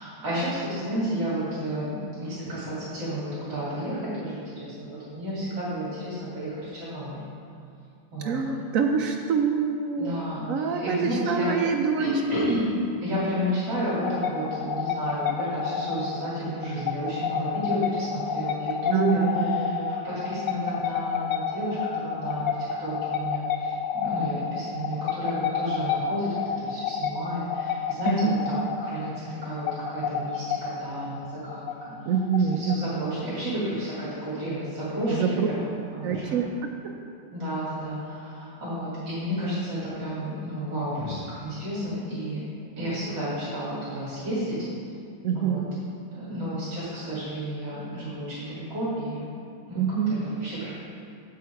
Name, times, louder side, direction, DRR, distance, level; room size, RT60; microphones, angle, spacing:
voice 1, 0.0-7.2 8.1-8.4 10.0-11.5 12.0-12.6 13.0-32.0 32.5-36.4 37.3-42.4 42.8-44.6 45.3-45.7 46.1-49.2 49.7-49.8 50.1-50.7, equal, 65° right, -10 dB, 3.3 m, -31 dB
voice 2, 8.2-10.2 10.5-12.1 12.4-12.7 18.9-20.1 28.1-28.4 32.1-33.5 35.1-35.5 36.0-36.7 45.2-45.7 49.7-50.2, right 6 dB, 85° right, 2 dB, 0.7 m, -26 dB
sound 1, 13.7-33.1, left 7 dB, 80° left, 0.7 m, -30 dB
8.4 x 8.0 x 4.6 m, 2.5 s
omnidirectional pair, 2.1 m